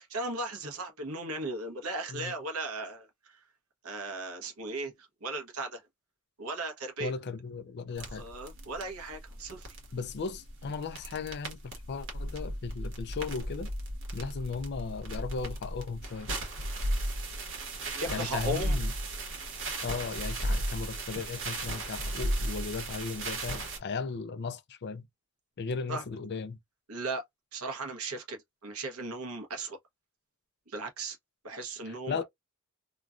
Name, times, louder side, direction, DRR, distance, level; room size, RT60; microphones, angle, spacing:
voice 1, 0.0-3.4 3.8-5.8 6.4-7.1 8.1-9.7 17.9-18.8 25.9-26.0 26.9-27.2 27.5-29.8 30.7-31.2 31.4-32.2, right 2 dB, 85° right, 1.1 m, -37 dB
voice 2, 7.0-8.2 9.9-13.7 14.1-16.3 17.8-18.9 19.8-25.1 25.6-26.6 31.9-32.2, left 4 dB, 50° left, 0.5 m, -36 dB
sound 1, 8.0-23.8, right 1 dB, 60° right, 1.3 m, -35 dB
3.1 x 2.3 x 2.4 m
head